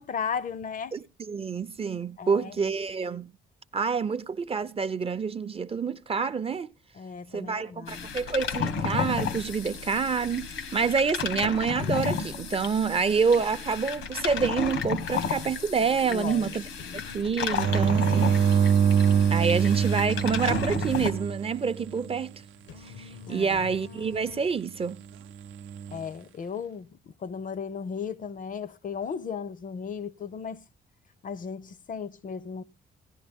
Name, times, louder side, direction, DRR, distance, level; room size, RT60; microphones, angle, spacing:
voice 1, 0.0-1.0 2.2-2.6 6.9-8.1 16.1-16.5 16.9-17.0 23.3-23.7 25.9-30.6 31.2-32.6, left 6 dB, 40° left, 0.5 m, -36 dB
voice 2, 0.9-3.3 3.7-6.7 7.3-16.6 16.9-18.3 19.3-22.3 23.0-25.0, right 5 dB, 30° right, 0.5 m, -27 dB
sound 1, 7.9-21.1, left 5 dB, 90° left, 1.4 m, -33 dB
sound 2, 16.8-24.8, left 7 dB, 70° left, 0.8 m, -46 dB
sound 3, 17.5-22.2 25.4-26.0, right 7 dB, 85° right, 0.6 m, -24 dB
16.5 x 10.5 x 3.5 m
cardioid pair, 90°, 20 cm